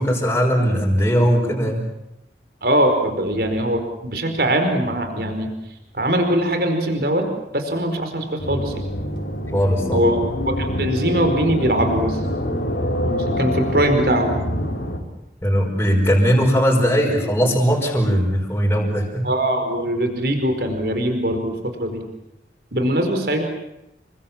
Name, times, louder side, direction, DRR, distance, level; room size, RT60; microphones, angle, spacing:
voice 1, 0.0-1.8 9.5-10.0 15.4-19.2, equal, 15° left, -1 dB, 5.2 m, -19 dB
voice 2, 2.6-5.5 5.9-7.2 7.5-8.8 9.9-12.2 13.0-14.4 19.2-22.0 22.7-23.4, right 1 dB, 60° right, 5 dB, 4.7 m, -21 dB
sound 1, 8.4-15.0, left 1 dB, 90° left, 4.9 m, -25 dB
28.5 x 24.0 x 7.4 m, 0.89 s
head